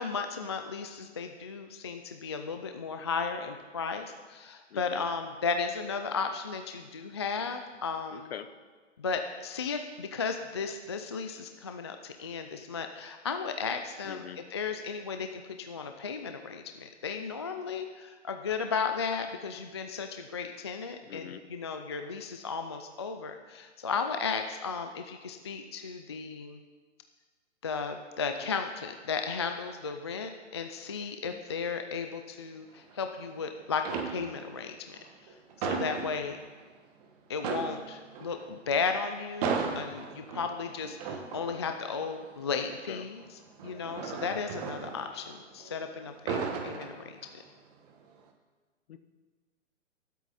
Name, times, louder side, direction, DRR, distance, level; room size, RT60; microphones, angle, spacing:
voice 1, 0.0-8.3 9.0-14.2 14.5-26.6 27.6-36.4 37.3-43.2 43.6-47.2, left 5 dB, 25° left, 6 dB, 0.3 m, -35 dB
voice 2, 4.7-5.0 8.1-8.5 14.0-14.4 21.1-21.4 42.9-43.1 48.9-49.0, left 9 dB, 55° left, 10 dB, 1.0 m, -43 dB
sound 1, 32.7-33.4 33.8-34.6 34.9-36.7 37.0-37.1 37.4-45.7 46.0-47.5 47.9-48.2, right 5 dB, 30° right, 1.4 m, -37 dB
23.0 x 8.3 x 4.1 m, 1.4 s
hypercardioid pair, 140°, 37 cm